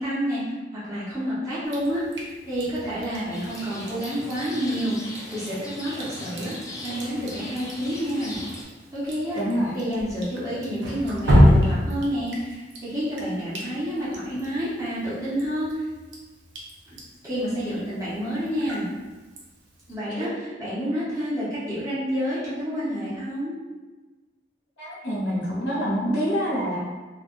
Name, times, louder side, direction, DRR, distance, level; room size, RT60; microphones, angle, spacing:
voice 1, 0.0-8.4 8.9-9.4 9.7-15.9 16.9-17.0 17.2-18.8 19.9-23.5, equal, 20° right, -11 dB, 0.8 m, -29 dB
Drip, 1.7-19.9, equal, 70° right, 0.6 m, -29 dB
Rain, 3.3-8.6, left 1 dB, 20° left, 0.4 m, -39 dB
voice 2, 9.3-9.7 20.2-20.3 24.8-26.8, equal, 85° left, -10 dB, 0.8 m, -26 dB
3.2 x 2.2 x 2.4 m, 1.3 s
head